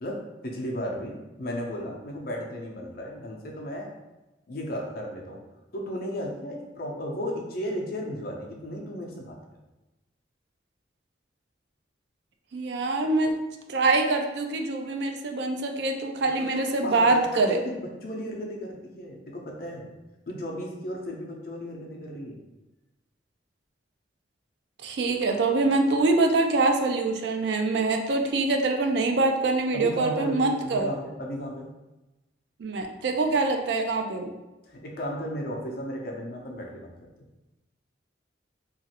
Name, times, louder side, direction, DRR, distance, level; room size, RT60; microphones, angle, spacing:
voice 1, 0.0-3.9 4.5-5.4 5.7-9.4 16.4-19.9 20.3-22.4 29.7-31.7 34.6-37.1, equal, 50° left, -1 dB, 0.6 m, -35 dB
voice 2, 12.5-13.4 13.7-17.6 24.8-30.9 32.6-34.3, right 3 dB, 65° right, 5 dB, 0.3 m, -24 dB
3.0 x 2.5 x 2.8 m, 1.0 s
head